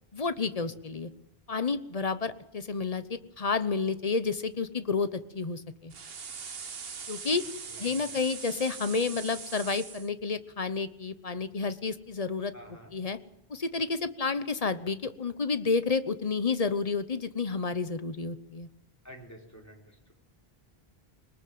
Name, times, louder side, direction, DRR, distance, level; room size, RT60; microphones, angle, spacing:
voice 1, 0.1-1.1 1.5-5.9 7.1-7.4 7.8-12.5 12.9-13.2 13.5-18.7, left 4 dB, 40° left, 13 dB, 1.0 m, -30 dB
sound 1, 5.9-10.1, right 6 dB, 70° right, 1.4 m, -41 dB
voice 2, 7.7-8.1 12.5-12.9 19.0-20.1, equal, 15° left, 1 dB, 4.4 m, -50 dB
22.0 x 19.5 x 7.8 m, 0.79 s
omnidirectional pair, 1.0 m